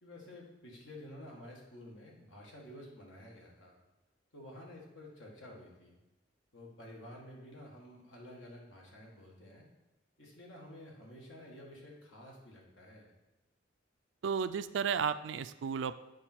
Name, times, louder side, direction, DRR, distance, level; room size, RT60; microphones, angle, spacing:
voice 1, 0.0-3.8 4.3-6.0 6.5-9.7 10.2-13.1, left 1 dB, 90° left, -1 dB, 1.9 m, -51 dB
voice 2, 14.2-16.0, right 6 dB, 70° right, 13 dB, 0.4 m, -33 dB
8.6 x 4.7 x 4.5 m, 1.0 s
head